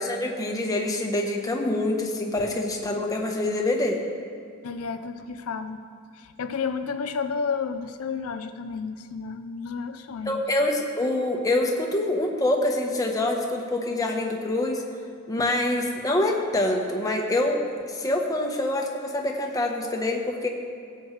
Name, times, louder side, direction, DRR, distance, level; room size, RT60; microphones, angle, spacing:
voice 1, 0.0-4.0 10.2-14.8 15.3-17.6 17.9-20.5, left 1 dB, 15° left, 1 dB, 1.0 m, -25 dB
voice 2, 4.6-5.8 6.1-10.4, left 5 dB, 80° left, 9 dB, 0.5 m, -31 dB
17.0 x 7.9 x 3.2 m, 2.2 s
head